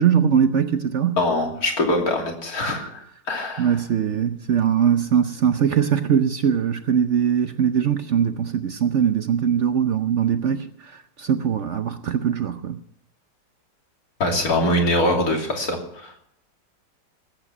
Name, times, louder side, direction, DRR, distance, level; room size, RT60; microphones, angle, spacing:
voice 1, 0.0-1.2 3.6-10.7 11.2-12.8, right 8 dB, 60° right, 0.8 m, -21 dB
voice 2, 1.2-3.0 3.3-3.8 14.2-16.1, left 1 dB, 55° left, 3.4 m, -23 dB
20.0 x 8.9 x 6.0 m
omnidirectional pair, 1.9 m